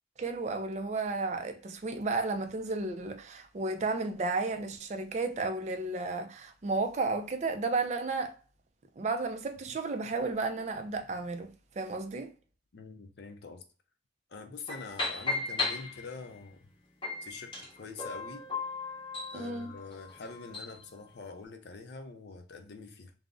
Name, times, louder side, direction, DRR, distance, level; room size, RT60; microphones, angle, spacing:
voice 1, 0.2-8.3 9.0-12.3 19.3-19.7, right 3 dB, 35° right, 0.3 m, -33 dB
voice 2, 12.7-13.6 14.3-16.6 17.2-18.5 19.3-23.1, left 4 dB, 60° left, 0.5 m, -45 dB
sound 1, 14.7-16.4 17.0-20.8, left 3 dB, 25° left, 0.8 m, -36 dB
2.4 x 2.0 x 3.5 m
head